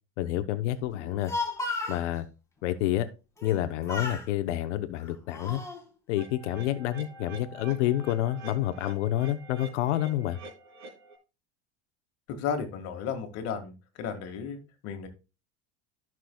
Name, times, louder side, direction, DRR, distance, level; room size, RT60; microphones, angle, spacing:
voice 1, 0.2-1.3 1.9-2.3 2.6-3.1 3.4-5.6 6.1-10.4, left 13 dB, 80° left, 11 dB, 0.9 m, -28 dB
Speech, 1.0-2.0 3.4-3.6 3.9-4.3 5.0-5.8, left 3 dB, 10° left, 1.9 m, -34 dB
sound 1, 6.2-11.2, right 3 dB, 85° right, 3.3 m, -47 dB
voice 2, 12.3-13.7 14.0-15.1, left 6 dB, 45° left, 6 dB, 1.8 m, -34 dB
14.0 x 6.1 x 2.3 m, 0.30 s
supercardioid pair, 140°, 35 cm